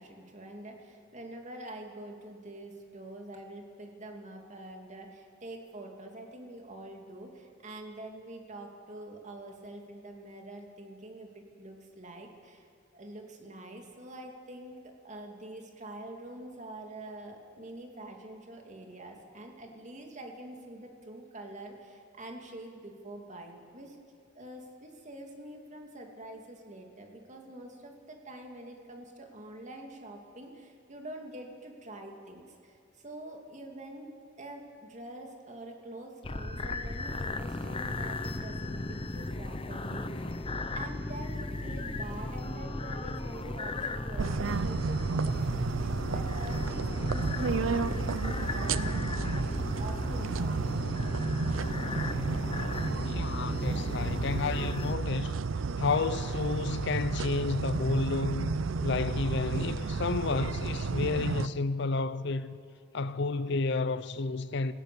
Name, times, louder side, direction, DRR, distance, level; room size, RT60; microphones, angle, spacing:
voice 1, 0.0-12.7 12.9-14.8 15.0-24.0 24.3-34.1 34.4-40.3 40.7-50.8, right 1 dB, 35° right, 2.4 m, -45 dB
sound 1, 36.2-55.0, left 2 dB, 25° left, 0.8 m, -36 dB
sound 2, 44.2-61.5, right 4 dB, 80° right, 0.6 m, -32 dB
voice 2, 53.0-55.4 55.8-58.5 58.8-62.6 62.9-64.7, left 3 dB, 60° left, 0.6 m, -31 dB
25.5 x 16.5 x 6.8 m
head